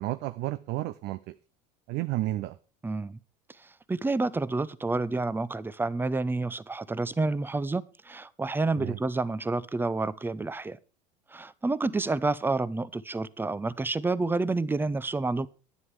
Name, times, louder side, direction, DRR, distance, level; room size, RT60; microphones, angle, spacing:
voice 1, 0.0-1.4 1.9-2.6 8.8-9.0, right 16 dB, 55° right, 0.6 m, -32 dB
voice 2, 2.8-3.2 3.9-10.8 11.3-15.5, right 3 dB, 10° right, 0.6 m, -29 dB
11.0 x 9.5 x 4.7 m
hypercardioid pair, 80°, 20 cm